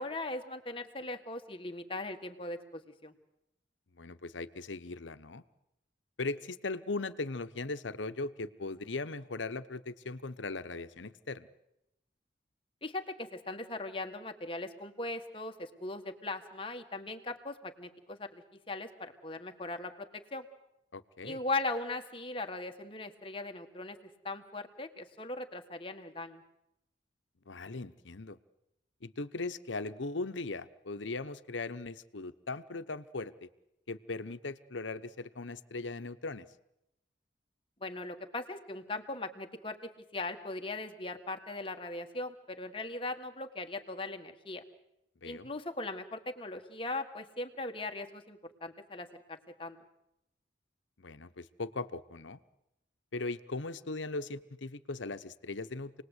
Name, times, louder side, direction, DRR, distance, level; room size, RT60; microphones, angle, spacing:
voice 1, 0.0-3.1 12.8-20.5 21.2-24.0 24.2-26.4 37.8-44.6 45.2-49.8, left 2 dB, 30° left, 6 dB, 1.6 m, -39 dB
voice 2, 4.0-5.4 6.2-11.5 20.9-21.4 27.5-28.4 29.0-33.5 33.9-36.5 45.2-45.5 51.0-52.4 53.1-56.0, left 3 dB, 85° left, 12 dB, 1.0 m, -39 dB
28.0 x 20.0 x 8.2 m, 0.87 s
head